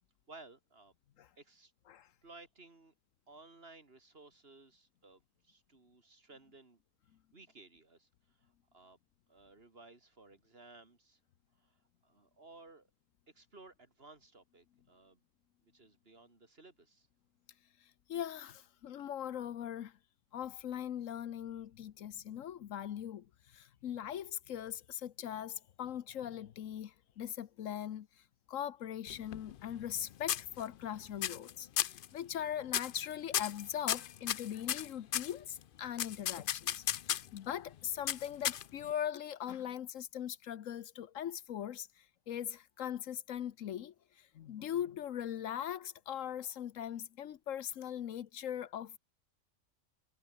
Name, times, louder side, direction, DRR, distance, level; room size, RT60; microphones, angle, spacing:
voice 1, 0.3-0.9 1.4-1.7 2.2-2.9 3.3-6.8 7.3-9.0 9.3-11.2 11.5-12.9 13.3-15.2 15.6-17.1, right 3 dB, 45° right, 3.1 m, -58 dB
voice 2, 18.1-20.0 20.3-28.1 28.5-49.0, left 10 dB, 75° left, 1.2 m, -40 dB
sound 1, 29.1-30.0 30.3-30.9 31.2-31.5 31.8-32.1 32.7-33.0 33.3-35.3 36.0-37.4 38.1-38.9, left 10 dB, 55° left, 0.6 m, -34 dB
omnidirectional pair, 1.4 m